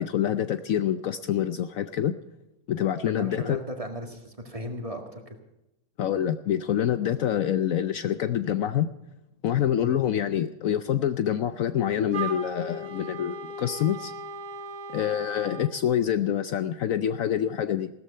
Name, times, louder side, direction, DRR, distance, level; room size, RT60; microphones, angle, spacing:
voice 1, 0.0-2.1 2.7-3.6 6.0-8.9 9.4-14.1 14.9-17.9, left 10 dB, 65° left, 11 dB, 1.0 m, -26 dB
voice 2, 3.0-5.4 9.8-9.9, equal, 20° right, 4 dB, 2.0 m, -36 dB
Wind instrument woodwind instrument, 12.1-15.8, right 3 dB, 75° right, 2.4 m, -37 dB
16.5 x 13.5 x 5.5 m, 0.89 s
omnidirectional pair, 1.7 m